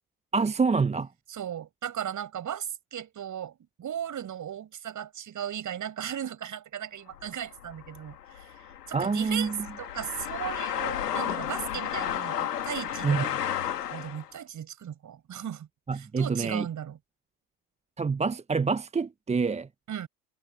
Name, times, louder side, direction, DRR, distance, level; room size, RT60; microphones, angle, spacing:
voice 1, 0.3-1.1 8.9-9.7 13.0-13.3 15.9-16.7 18.0-19.7, right 4 dB, 15° right, 0.9 m, -26 dB
voice 2, 1.3-13.3 13.9-15.7 15.9-17.0 19.9-20.1, right 9 dB, 40° right, 7.1 m, -36 dB
sound 1, 7.1-14.3, left 10 dB, 85° left, 2.2 m, -33 dB
hypercardioid pair, 70°, 46 cm